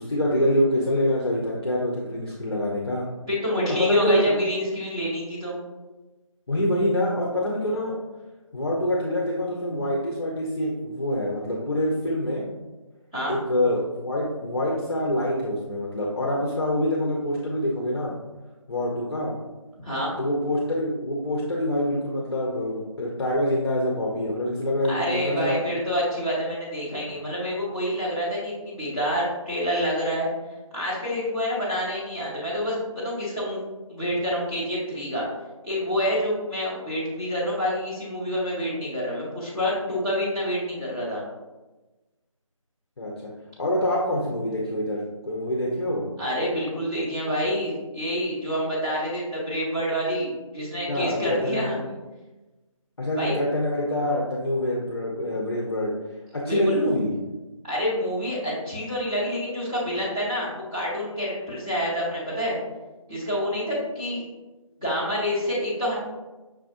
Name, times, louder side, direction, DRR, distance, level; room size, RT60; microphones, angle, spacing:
voice 1, 0.0-3.1 3.8-4.3 6.5-7.9 8.5-12.4 13.3-18.1 18.7-19.3 20.2-25.6 43.0-43.3 43.6-46.1 50.9-51.7 53.0-55.9 56.3-57.1, left 1 dB, 45° left, -4 dB, 0.6 m, -25 dB
voice 2, 3.3-5.5 13.1-13.4 19.8-20.2 24.9-30.3 30.7-33.6 33.9-35.3 35.6-41.2 46.2-51.8 53.2-53.4 56.5-56.8 57.6-62.6 63.1-64.2 64.8-65.9, equal, 10° right, -12 dB, 0.9 m, -27 dB
6.1 x 2.4 x 2.5 m, 1.1 s
figure-of-eight pair, 160°, 18 cm